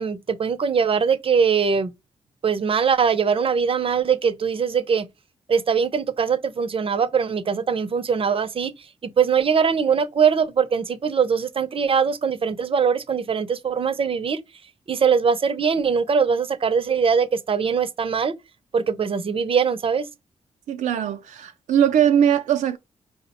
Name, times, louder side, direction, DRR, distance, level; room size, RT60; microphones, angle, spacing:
voice 1, 0.0-1.9 2.4-5.1 5.5-14.4 14.9-18.3 18.7-20.1, right 6 dB, 45° right, 0.6 m, -22 dB
voice 2, 20.7-22.8, right 9 dB, 90° right, 0.4 m, -20 dB
4.6 x 2.1 x 4.1 m
cardioid pair, 60°, 13 cm